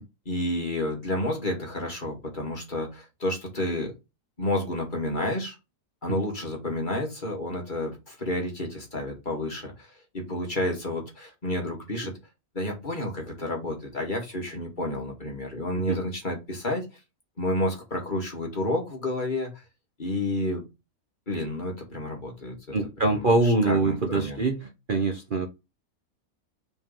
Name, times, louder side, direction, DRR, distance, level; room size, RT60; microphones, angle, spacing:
voice 1, 0.3-3.9 4.4-5.6 6.0-12.1 12.5-16.9 17.4-19.6 20.0-20.6 21.3-22.5 23.0-24.4, left 1 dB, 35° left, 2.2 m, -30 dB
voice 2, 22.7-25.5, right 3 dB, 40° right, 1.0 m, -24 dB
5.1 x 3.8 x 5.4 m
omnidirectional pair, 1.5 m